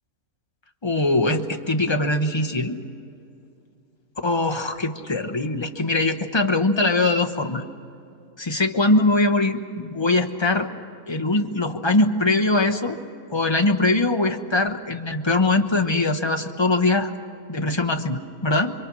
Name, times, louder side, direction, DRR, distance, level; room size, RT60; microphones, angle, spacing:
voice 1, 0.8-2.8 4.2-7.6 8.4-10.7 11.1-13.0 13.3-17.1 17.5-18.7, left 2 dB, 20° left, 6 dB, 1.0 m, -22 dB
26.5 x 24.0 x 6.2 m, 2.5 s
omnidirectional pair, 1.5 m